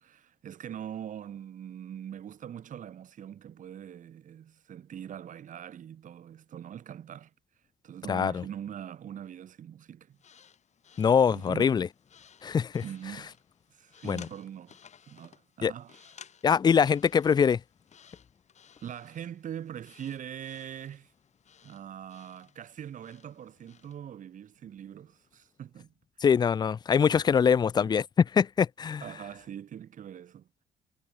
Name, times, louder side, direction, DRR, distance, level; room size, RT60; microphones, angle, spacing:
voice 1, 0.0-7.3 7.8-10.2 11.3-11.7 12.8-13.4 13.7-14.8 15.1-16.2 18.8-21.1 21.6-25.9 27.7-28.0 29.0-30.5, right 9 dB, 50° right, 2.5 m, -42 dB
voice 2, 8.1-8.4 11.0-11.9 12.4-12.8 14.0-14.3 15.6-15.7 16.4-17.6 26.2-29.0, left 7 dB, 25° left, 0.4 m, -23 dB
sound 1, 10.1-24.0, left 7 dB, 45° left, 5.3 m, -57 dB
cardioid pair, 110°, 17 cm